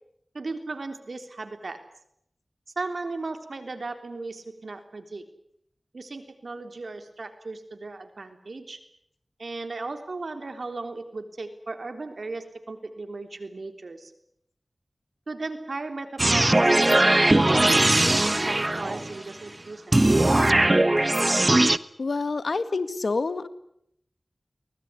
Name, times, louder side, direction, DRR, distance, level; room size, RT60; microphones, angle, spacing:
voice 1, 0.3-1.9 2.8-5.3 5.9-8.8 9.4-14.1 15.3-20.4, right 3 dB, 80° right, 7 dB, 3.6 m, -36 dB
sound 1, 16.2-19.2 19.9-21.8, right 1 dB, 35° right, 1.1 m, -20 dB
voice 2, 22.0-23.5, left 3 dB, 90° left, 12 dB, 1.7 m, -27 dB
24.0 x 20.0 x 9.7 m, 0.72 s
wide cardioid pair, 45°, 0 cm